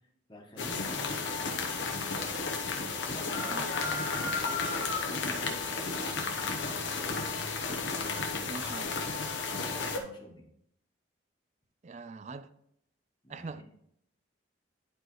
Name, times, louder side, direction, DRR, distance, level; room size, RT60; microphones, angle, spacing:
voice 1, 0.3-2.0 2.9-6.7 7.0-7.3 9.6-10.4 13.2-13.6, equal, 25° left, 1.2 m, -47 dB
sound 1, 0.6-10.0, left 4 dB, 70° left, 0.9 m, -33 dB
voice 2, 8.5-8.9 11.8-12.5 13.3-13.6, right 3 dB, 35° right, 0.3 m, -42 dB
11.0 x 4.7 x 3.1 m
head